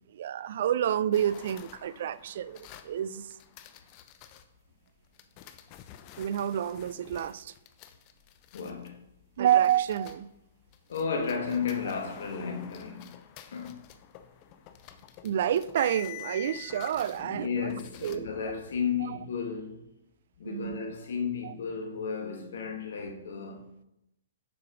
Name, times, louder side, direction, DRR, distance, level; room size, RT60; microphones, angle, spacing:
voice 1, 0.1-3.3 6.2-7.5 9.4-10.3 15.2-17.7 18.0-18.3 19.0-19.2 20.4-20.8 21.4-21.5, right 10 dB, 60° right, 0.3 m, -29 dB
sound 1, 1.1-4.4 5.2-10.4 10.7-18.2, left 13 dB, 35° left, 0.6 m, -48 dB
voice 2, 8.5-9.0 10.9-13.1 13.5-13.8 17.2-19.8 20.4-23.7, left 6 dB, 65° left, 1.2 m, -33 dB
7.0 x 4.8 x 4.9 m
hypercardioid pair, 130°, 0 cm